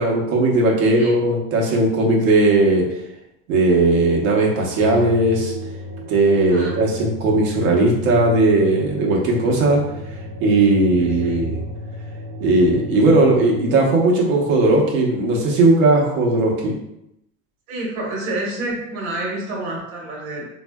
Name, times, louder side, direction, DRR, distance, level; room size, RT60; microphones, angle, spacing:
voice 1, 0.0-2.8 3.5-5.5 6.1-9.8 10.4-11.6 12.4-16.7, right 2 dB, 75° right, -1 dB, 1.0 m, -17 dB
sound 1, 4.8-13.6, left 1 dB, 20° right, 0.5 m, -33 dB
voice 2, 11.0-11.4 17.7-20.4, right 2 dB, 60° right, -2 dB, 1.2 m, -28 dB
3.3 x 2.6 x 2.2 m, 0.84 s
supercardioid pair, 135°, 41 cm